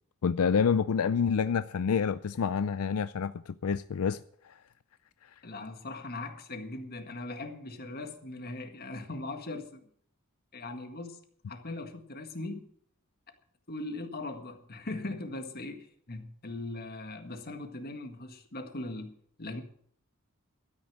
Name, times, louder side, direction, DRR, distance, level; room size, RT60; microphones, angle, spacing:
voice 1, 0.2-4.5, left 6 dB, 85° left, 0.4 m, -28 dB
voice 2, 5.4-9.8 10.5-11.2 11.5-12.6 13.7-19.1 19.4-19.6, left 2 dB, 45° left, 1.7 m, -39 dB
13.0 x 9.7 x 7.2 m
head